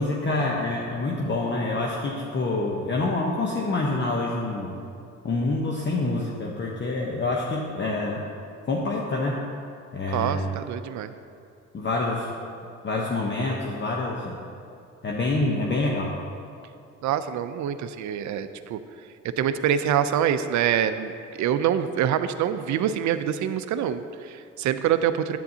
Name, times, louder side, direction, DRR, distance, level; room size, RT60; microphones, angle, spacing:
voice 1, 0.0-4.8 5.2-8.2 8.7-9.4 9.9-10.5 11.7-12.3 12.8-14.4 15.0-16.2, left 2 dB, 35° left, -2 dB, 1.0 m, -26 dB
voice 2, 10.1-11.1 17.0-18.8 19.4-21.1 21.4-25.4, right 9 dB, 70° right, 11 dB, 0.5 m, -25 dB
10.5 x 9.0 x 2.8 m, 2.5 s
cardioid pair, 85°, 30 cm